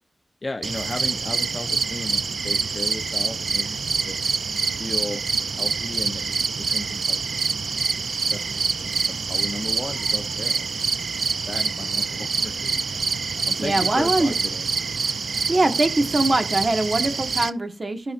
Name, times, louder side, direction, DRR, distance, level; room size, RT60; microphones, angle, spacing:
voice 1, 0.4-4.2 4.8-5.2 5.6-7.5 8.3-11.2 11.5-12.8 13.4-14.6, left 2 dB, 35° left, 0.7 m, -35 dB
sound 1, 0.6-17.5, right 5 dB, 75° right, 0.4 m, -26 dB
voice 2, 13.6-14.3 15.5-18.1, right 2 dB, 35° right, 1.5 m, -22 dB
15.0 x 5.5 x 2.5 m
wide cardioid pair, 120°, 0 cm